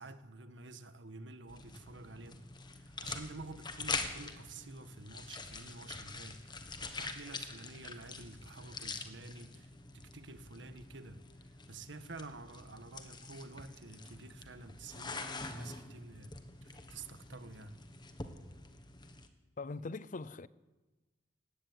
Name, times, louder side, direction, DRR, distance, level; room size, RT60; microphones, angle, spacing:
voice 1, 0.0-2.4 2.7-16.3 16.6-17.8, right 3 dB, 80° right, 1.5 m, -50 dB
sound 1, 1.5-19.3, left 3 dB, 25° left, 1.5 m, -45 dB
voice 2, 19.6-20.5, left 3 dB, 45° left, 0.6 m, -41 dB
18.0 x 15.5 x 9.6 m
head